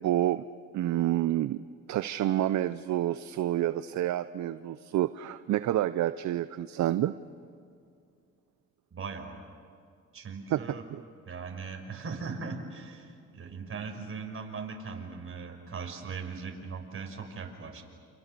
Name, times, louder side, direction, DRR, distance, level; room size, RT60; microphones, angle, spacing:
voice 1, 0.0-0.4 0.7-1.6 1.9-7.1 10.5-10.6 10.9-11.0, right 13 dB, 70° right, 13 dB, 0.7 m, -28 dB
voice 2, 8.9-9.4 10.1-10.9 11.3-17.8, right 5 dB, 45° right, 3 dB, 5.7 m, -39 dB
29.5 x 28.5 x 6.8 m, 2.3 s
cardioid pair, 90°, 30 cm